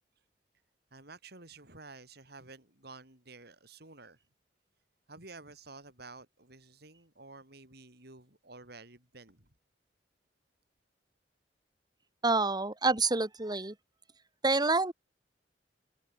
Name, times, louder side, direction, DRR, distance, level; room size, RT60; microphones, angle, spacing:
voice 1, 0.9-4.2 5.1-9.5, right 3 dB, 60° right, 5.9 m, -51 dB
voice 2, 12.2-13.7 14.4-14.9, right 3 dB, 25° right, 1.9 m, -27 dB
head